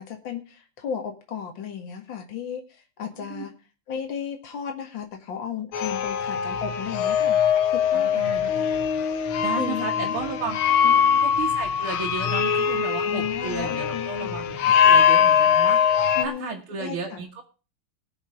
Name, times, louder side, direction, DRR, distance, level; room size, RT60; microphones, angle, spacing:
voice 1, 0.0-3.5 3.9-7.4 7.7-8.2 9.6-10.2 10.8-11.2 13.0-14.4 16.2-17.2, left 8 dB, 65° left, 4 dB, 2.4 m, -34 dB
sound 1, 5.7-16.3, left 8 dB, 80° left, 1.8 m, -22 dB
voice 2, 7.9-8.7 9.4-10.6 11.2-17.4, right 5 dB, 80° right, -1 dB, 2.4 m, -34 dB
19.0 x 6.6 x 4.9 m, 0.34 s
omnidirectional pair, 2.3 m